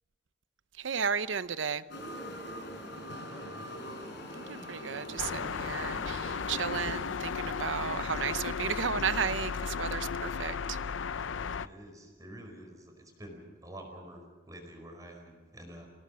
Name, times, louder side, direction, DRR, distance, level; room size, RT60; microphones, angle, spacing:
voice 1, 0.8-1.8 4.3-10.8, right 6 dB, 75° right, 14 dB, 0.8 m, -34 dB
sound 1, 1.9-7.4, equal, 65° left, 4.5 m, -43 dB
voice 2, 3.1-3.9 11.6-15.9, right 1 dB, 20° right, 3 dB, 4.8 m, -48 dB
sound 2, 5.2-11.7, left 6 dB, 80° left, 0.6 m, -35 dB
28.5 x 17.5 x 6.3 m, 1.4 s
head